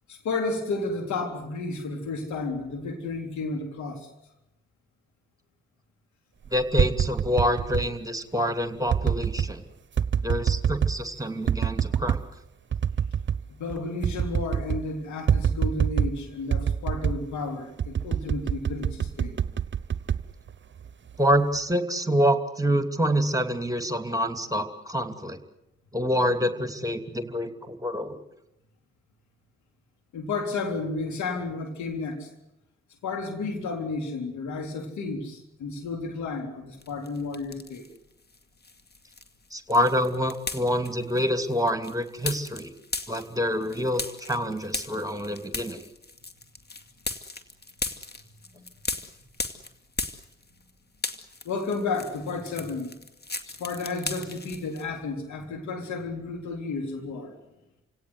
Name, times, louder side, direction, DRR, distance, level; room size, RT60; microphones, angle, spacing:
voice 1, 0.1-4.1 13.6-19.4 30.1-32.3 33.0-37.9 48.5-48.6 51.4-52.9 53.4-57.4, left 3 dB, 70° left, 3.7 m, -32 dB
voice 2, 6.5-9.6 10.2-12.2 21.2-25.4 25.9-28.2 39.5-42.7 43.1-45.9, equal, 10° right, 2.8 m, -26 dB
sound 1, 6.5-7.9 8.9-9.5 10.0-11.0 11.5-12.2 12.7-13.4 13.7-13.8 14.0-14.9 15.3-16.2 16.5-17.2 17.8-20.9 21.3-21.7, right 8 dB, 40° right, 0.9 m, -25 dB
sound 2, 36.8-38.0 38.3-50.7 50.9-54.8, left 3 dB, 35° left, 2.4 m, -37 dB
29.5 x 17.5 x 8.1 m
hypercardioid pair, 40°, 30 cm